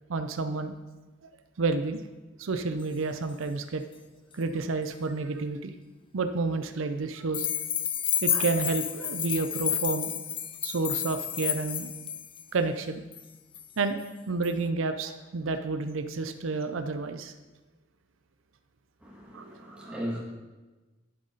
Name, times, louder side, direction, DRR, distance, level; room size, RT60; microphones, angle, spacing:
voice 1, 0.1-0.7 1.2-1.3 1.6-2.0 2.4-3.8 4.3-5.7 6.1-7.5 8.2-10.1 10.6-11.9 12.5-13.0 13.8-17.3 19.3-20.0, right 3 dB, 80° right, 9 dB, 0.5 m, -30 dB
sound 1, 7.3-12.4 13.1-13.2 13.5-13.6 14.4-14.5, left 9 dB, 25° left, 0.4 m, -30 dB
voice 2, 19.0-20.2, equal, 5° right, -5 dB, 2.0 m, -37 dB
10.5 x 7.8 x 3.9 m, 1.2 s
head